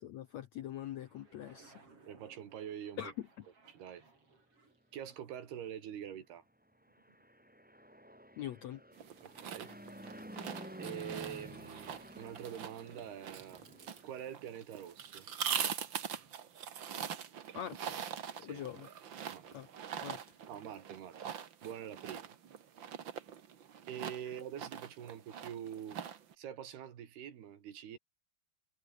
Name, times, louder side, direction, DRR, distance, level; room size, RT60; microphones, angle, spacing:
voice 1, 0.0-1.8 3.0-3.3 8.4-8.8 17.5-18.0 18.4-18.9 19.5-19.7 20.0-20.2, left 11 dB, 80° left, 1.6 m, -43 dB
sound 1, 1.0-5.9 6.7-7.9 8.2-9.8 10.1-17.7 19.1-20.4, right 3 dB, 35° right, 6.1 m, -67 dB
voice 2, 2.1-3.1 3.7-4.0 4.9-6.4 9.2-9.7 10.8-13.6 14.0-15.3 18.4-18.6 19.3-19.5 20.5-21.2 21.6-22.4 23.9-26.0 26.4-28.0, right 9 dB, 85° right, 4.5 m, -45 dB
Fixed-wing aircraft airplane, 6.8-14.2, equal, ahead, 2.9 m, -51 dB
sound 2, 9.0-26.3, right 8 dB, 55° right, 1.3 m, -43 dB
omnidirectional pair, 4.4 m